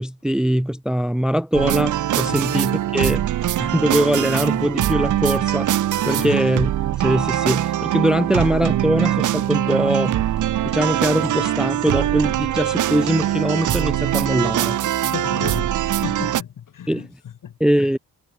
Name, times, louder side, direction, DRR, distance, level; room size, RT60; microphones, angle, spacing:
voice 1, 0.0-3.3 3.6-5.7 6.1-6.7 7.0-10.2 10.6-14.8 16.9-17.1 17.6-18.0, equal, ahead, 0.6 m, -22 dB
sound 1, 1.5-16.4, right 12 dB, 55° right, 0.7 m, -22 dB
voice 2, 6.1-6.4 15.0-17.6, left 9 dB, 60° left, 7.1 m, -33 dB
cardioid pair, 120°, 36 cm